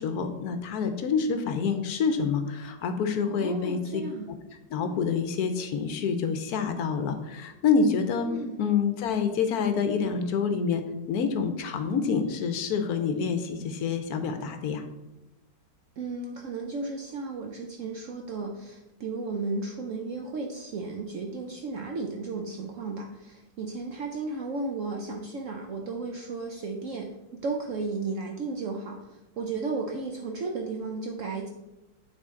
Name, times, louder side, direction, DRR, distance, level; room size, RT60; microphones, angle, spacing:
voice 1, 0.0-3.8 4.7-8.3 8.6-10.8 11.1-14.8, left 5 dB, 65° left, 7 dB, 1.0 m, -27 dB
voice 2, 3.2-4.3 8.2-8.6 16.0-31.5, right 3 dB, 70° right, 2 dB, 0.7 m, -34 dB
8.8 x 3.8 x 3.7 m, 0.98 s
omnidirectional pair, 2.0 m